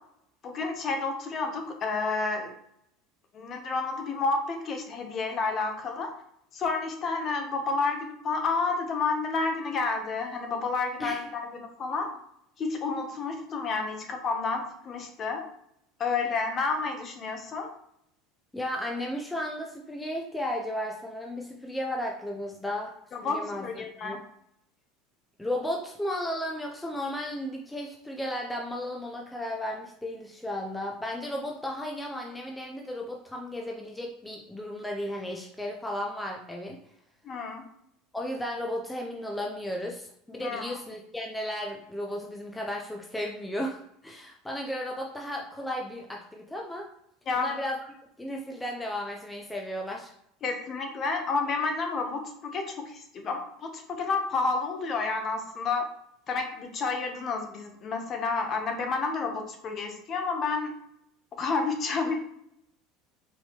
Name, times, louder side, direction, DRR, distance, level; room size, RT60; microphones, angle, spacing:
voice 1, 0.4-2.5 3.3-6.1 6.5-12.1 12.6-15.4 16.0-17.7 23.1-24.2 37.2-37.7 40.4-40.6 47.3-47.5 50.4-55.9 56.3-60.7 61.4-62.2, left 4 dB, 35° left, 4 dB, 0.8 m, -30 dB
voice 2, 18.5-22.9 23.2-24.2 25.4-36.8 38.1-46.9 47.3-47.8 48.2-50.1, left 1 dB, 5° left, 0 dB, 0.5 m, -34 dB
4.4 x 3.5 x 2.9 m, 0.74 s
supercardioid pair, 135°, 0 cm